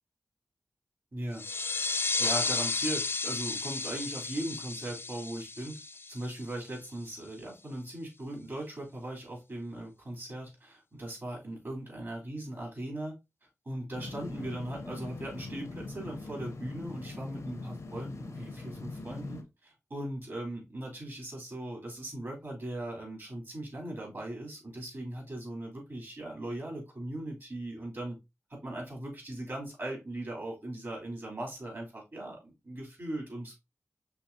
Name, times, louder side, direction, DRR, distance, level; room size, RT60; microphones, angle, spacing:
voice 1, 1.1-1.4 2.2-5.8 6.1-13.1 13.6-28.2 28.5-33.5, right 1 dB, 50° right, 3.2 m, -39 dB
sound 1, 1.3-6.7, left 4 dB, 50° left, 0.4 m, -33 dB
sound 2, 13.9-19.4, left 3 dB, 85° left, 1.0 m, -42 dB
5.8 x 3.3 x 2.7 m
cardioid pair, 45°, 5 cm